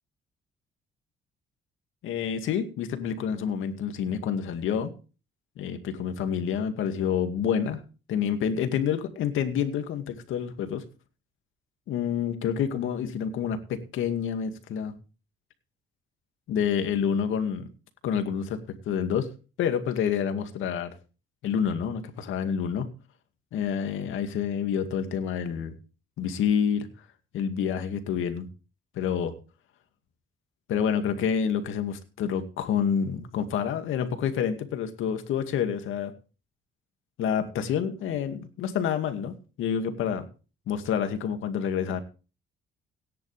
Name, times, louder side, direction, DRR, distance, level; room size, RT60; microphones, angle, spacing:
voice 1, 2.0-4.9 5.6-7.8 8.1-10.8 11.9-14.9 16.5-17.7 18.0-18.6 18.9-19.3 19.6-20.9 21.4-22.9 23.5-25.7 26.2-26.9 27.3-28.5 29.0-29.3 30.7-36.1 37.2-40.3 40.7-42.0, left 8 dB, 85° left, 7 dB, 2.2 m, -28 dB
18.0 x 10.5 x 3.4 m, 0.34 s
cardioid pair, 90°, 20 cm